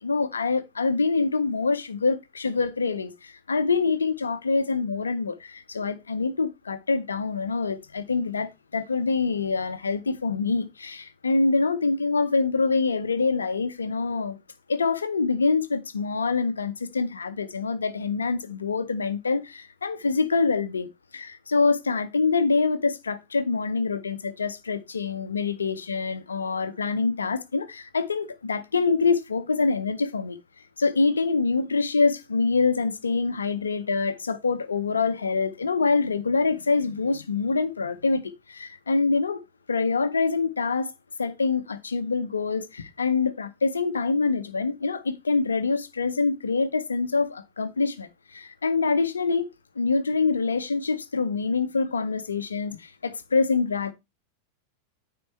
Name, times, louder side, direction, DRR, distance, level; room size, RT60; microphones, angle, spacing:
voice 1, 0.0-14.4 14.7-30.4 30.8-39.4 39.7-40.9 41.2-49.5 49.8-53.9, left 4 dB, 75° left, 0.7 m, -25 dB
9.6 x 3.8 x 4.4 m
figure-of-eight pair, 90°, 0 cm